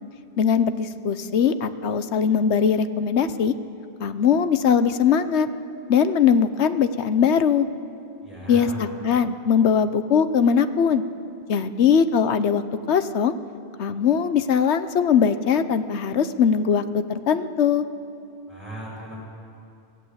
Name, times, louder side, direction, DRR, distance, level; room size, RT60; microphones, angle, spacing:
voice 1, 0.4-3.5 4.0-5.5 5.9-7.7 8.5-11.0 11.5-12.6 12.9-13.3 13.8-17.8, left 7 dB, 90° left, 12 dB, 1.1 m, -20 dB
voice 2, 8.2-8.8 18.5-19.2, right 1 dB, 25° left, -4 dB, 6.6 m, -37 dB
23.5 x 16.5 x 8.1 m, 2.6 s
omnidirectional pair, 1.1 m